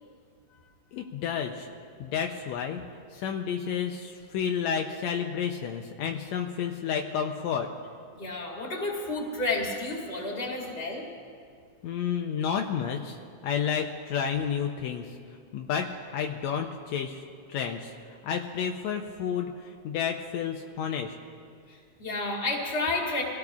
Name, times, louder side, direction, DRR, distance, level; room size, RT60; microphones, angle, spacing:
voice 1, 0.9-1.7 2.0-2.8 3.1-7.7 11.8-13.2 13.4-15.1 15.5-17.2 17.5-17.9 18.2-21.2, left 7 dB, 80° left, 3 dB, 1.8 m, -31 dB
voice 2, 8.1-11.1 21.7-23.2, left 2 dB, 20° left, -3 dB, 2.2 m, -31 dB
25.5 x 16.5 x 2.4 m, 2.3 s
omnidirectional pair, 3.3 m